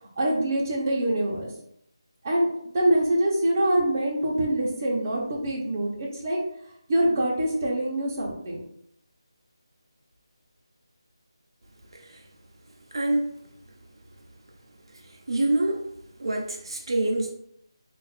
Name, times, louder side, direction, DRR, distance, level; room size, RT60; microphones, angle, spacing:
voice 1, 0.0-1.5 2.2-2.5 2.7-6.4 6.9-8.6, right 1 dB, 30° right, -3 dB, 0.8 m, -24 dB
voice 2, 12.9-13.3 15.3-15.9 16.2-17.3, right 2 dB, 70° right, 1 dB, 0.6 m, -26 dB
2.5 x 2.5 x 4.1 m, 0.72 s
figure-of-eight pair, 170°, 3 cm